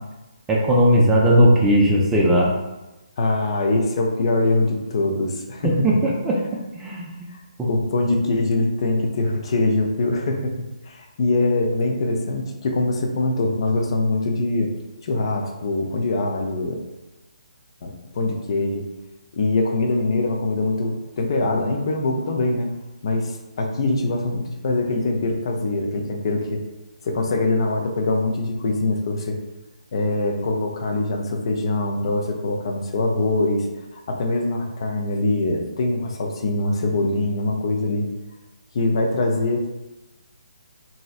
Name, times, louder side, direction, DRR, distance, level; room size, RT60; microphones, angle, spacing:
voice 1, 0.5-2.5 5.6-6.4 6.8-7.1 7.6-7.7, equal, 10° right, -4 dB, 0.4 m, -17 dB
voice 2, 3.2-5.9 7.3-14.7 15.0-16.7 17.8-18.8 19.3-22.7 23.0-26.6 27.0-29.4 29.9-33.7 33.9-38.1 38.7-39.7, left 2 dB, 45° left, 1 dB, 0.5 m, -23 dB
3.0 x 2.7 x 2.4 m, 1.0 s
figure-of-eight pair, 140°, 4 cm